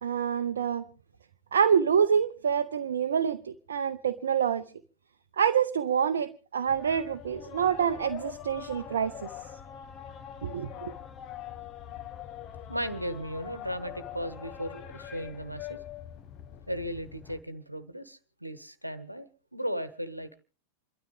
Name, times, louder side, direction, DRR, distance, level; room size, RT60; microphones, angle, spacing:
voice 1, 0.0-0.8 1.5-4.7 5.4-9.3 10.4-10.9, right 7 dB, 65° right, 0.6 m, -27 dB
sound 1, 6.7-17.4, left 10 dB, 35° left, 1.0 m, -43 dB
voice 2, 12.7-15.8 16.7-20.4, equal, 90° right, 1.1 m, -36 dB
28.0 x 12.5 x 3.5 m
figure-of-eight pair, 90°, 0 cm